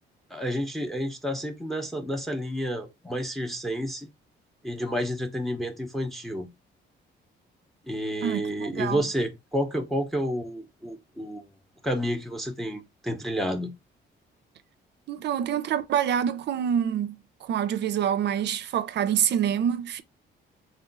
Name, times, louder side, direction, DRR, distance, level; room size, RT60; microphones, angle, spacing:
voice 1, 0.3-4.1 4.6-6.5 7.9-11.4 11.8-13.7, equal, ahead, 0.6 m, -30 dB
voice 2, 8.2-9.0 15.1-20.0, right 9 dB, 60° right, 0.5 m, -26 dB
3.5 x 2.3 x 3.8 m
cardioid pair, 90°, 20 cm